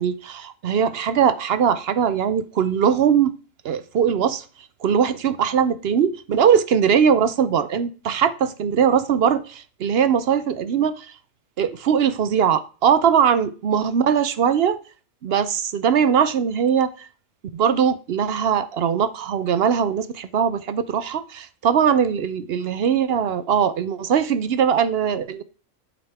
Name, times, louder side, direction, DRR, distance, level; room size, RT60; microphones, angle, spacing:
voice 1, 0.0-3.3 3.6-4.4 4.8-11.1 11.6-14.8 15.2-17.1 17.5-25.4, right 7 dB, 60° right, 0.7 m, -20 dB
9.3 x 5.4 x 3.4 m
omnidirectional pair, 1.5 m